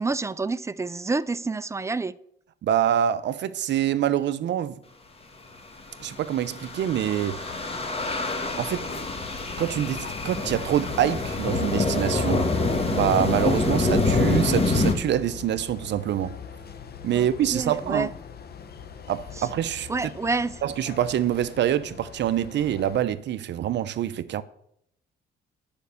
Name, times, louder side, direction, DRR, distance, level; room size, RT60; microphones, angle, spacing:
voice 1, 0.0-2.2 17.1-18.1 19.4-19.5 19.9-20.6, right 3 dB, 15° right, 0.4 m, -28 dB
voice 2, 2.6-4.8 6.0-7.4 7.7-7.8 8.5-8.9 9.6-12.5 12.9-16.4 17.0-18.1 19.1-19.9 20.6-24.4, right 11 dB, 65° right, 0.5 m, -25 dB
sound 1, 6.0-14.9, left 3 dB, 30° left, 1.6 m, -26 dB
sound 2, 8.4-23.0, left 6 dB, 50° left, 0.9 m, -40 dB
8.9 x 5.2 x 6.9 m
cardioid pair, 90°, 20 cm